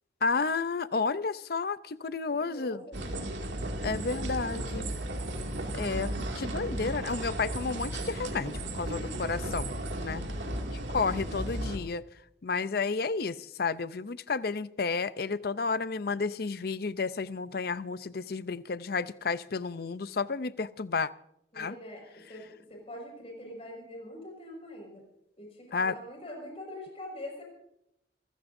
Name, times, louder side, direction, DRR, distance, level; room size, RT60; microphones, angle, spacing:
voice 1, 0.2-2.8 3.8-4.8 5.7-10.2 10.9-12.0 12.4-21.1 21.6-21.8 25.7-25.9, left 4 dB, 55° left, 0.6 m, -31 dB
voice 2, 2.3-3.3 3.7-4.7 10.2-10.8 21.5-25.0 25.4-27.4, left 1 dB, 35° left, 5.7 m, -44 dB
sound 1, 2.9-11.8, right 1 dB, 80° right, 2.4 m, -35 dB
26.5 x 14.5 x 2.7 m
head